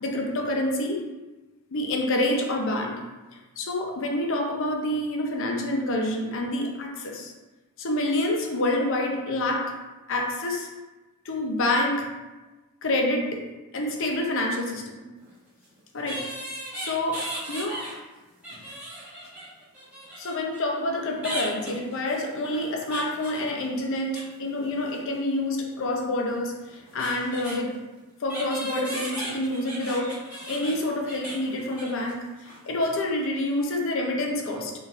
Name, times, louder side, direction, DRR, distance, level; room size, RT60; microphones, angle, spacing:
voice 1, 0.0-1.0 1.7-3.0 3.3-7.3 7.8-9.7 10.1-10.7 11.2-12.1 12.8-13.4 13.7-15.1 15.9-16.3 16.7-17.8 20.2-27.8 28.2-30.2 30.5-34.7, left 1 dB, 60° left, 1 dB, 0.6 m, -27 dB
sound 1, 15.2-15.3 16.1-18.0 18.3-20.6 21.2-24.3 24.6-25.0 26.3-26.4 26.6-27.6 28.3-32.1 32.4-32.6 32.9-33.0, right 1 dB, 5° right, 1.3 m, -37 dB
3.9 x 3.8 x 2.4 m, 1.1 s
head